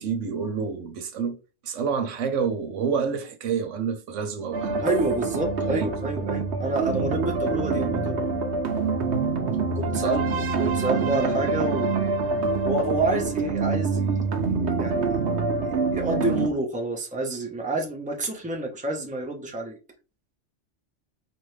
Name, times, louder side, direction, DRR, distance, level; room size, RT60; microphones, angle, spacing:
voice 1, 0.0-1.4 1.6-4.9 5.7-5.9 10.0-10.2, right 6 dB, 90° right, 1.1 m, -28 dB
sound 1, 4.5-16.5, right 4 dB, 70° right, 1.0 m, -26 dB
voice 2, 4.8-8.2 9.7-12.0 12.6-15.2 15.6-19.8, right 2 dB, 10° right, 0.8 m, -29 dB
4.6 x 2.6 x 3.2 m
omnidirectional pair, 1.2 m